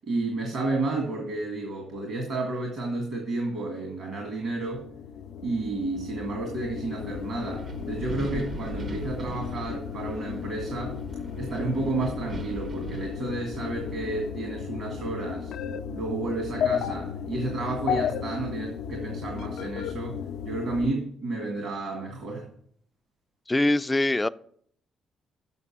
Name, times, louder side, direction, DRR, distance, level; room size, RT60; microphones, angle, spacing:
voice 1, 0.0-4.9 5.4-11.0 11.4-15.5 15.9-20.2 20.4-22.5, right 2 dB, 65° right, 1.8 m, -31 dB
sound 1, 4.3-20.9, left 8 dB, 80° left, 0.5 m, -34 dB
Wind, 7.0-14.3, right 3 dB, 50° right, 0.7 m, -41 dB
voice 2, 23.5-24.3, left 2 dB, 15° left, 0.3 m, -23 dB
6.8 x 6.5 x 7.3 m
cardioid pair, 90°, 0 cm